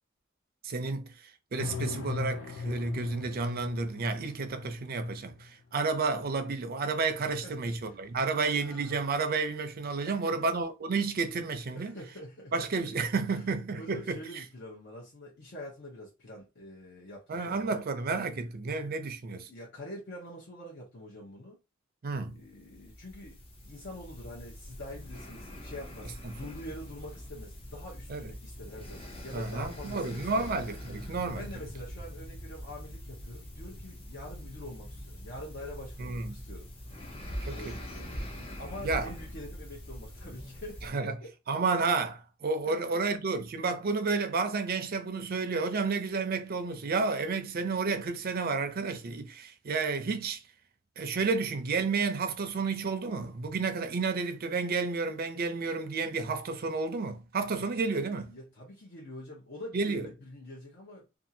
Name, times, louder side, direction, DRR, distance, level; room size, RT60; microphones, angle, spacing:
voice 1, 0.6-11.9 12.5-14.2 17.3-19.5 22.0-22.4 28.1-28.2 29.3-31.4 36.0-36.4 37.5-37.8 38.8-39.1 40.8-41.2 41.5-50.4 51.0-58.3 59.7-60.1, right 4 dB, 50° right, 0.5 m, -31 dB
sound 1, 1.6-5.5 7.3-7.8 8.2-8.3 8.5-9.1, left 4 dB, 80° left, 0.4 m, -39 dB
voice 2, 7.4-8.0 10.1-10.4 11.7-12.5 13.3-13.5 13.8-17.8 19.5-21.6 22.3-30.5 31.3-36.7 37.5-38.3 38.6-41.3 42.7-43.0 57.4-57.7 58.3-61.2, left 1 dB, 60° left, 0.8 m, -45 dB
sound 2, 22.4-40.9, equal, 30° left, 0.6 m, -43 dB
2.6 x 2.4 x 2.7 m
head